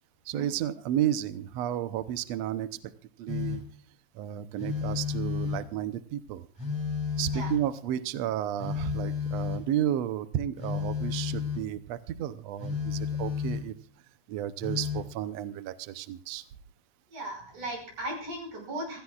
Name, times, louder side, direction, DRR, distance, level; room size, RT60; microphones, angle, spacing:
voice 1, 0.3-2.9 3.2-3.6 4.1-6.5 7.2-13.7 14.3-16.4, right 11 dB, 80° right, 12 dB, 1.5 m, -32 dB
Telephone, 3.3-3.8 4.6-5.8 6.6-7.8 8.6-9.8 10.6-11.7 12.6-13.8 14.6-15.1, left 6 dB, 10° right, 2.4 m, -32 dB
voice 2, 17.1-19.0, right 1 dB, 60° right, 1 dB, 7.2 m, -37 dB
26.0 x 16.0 x 2.4 m, 0.42 s
omnidirectional pair, 4.0 m